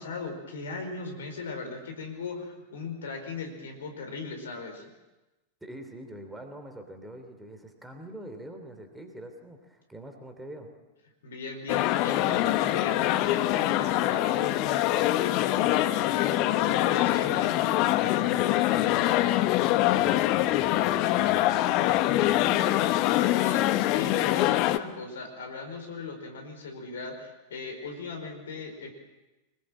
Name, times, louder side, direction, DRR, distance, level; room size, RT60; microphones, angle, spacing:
voice 1, 0.0-4.9 11.2-17.5 23.2-28.9, left 4 dB, 65° left, 4 dB, 4.8 m, -38 dB
voice 2, 5.6-10.7 18.0-22.6, right 1 dB, 5° right, 5 dB, 3.3 m, -44 dB
sound 1, 11.7-24.8, left 15 dB, 40° left, 1.0 m, -24 dB
25.0 x 20.5 x 7.6 m, 1.1 s
figure-of-eight pair, 90°, 0 cm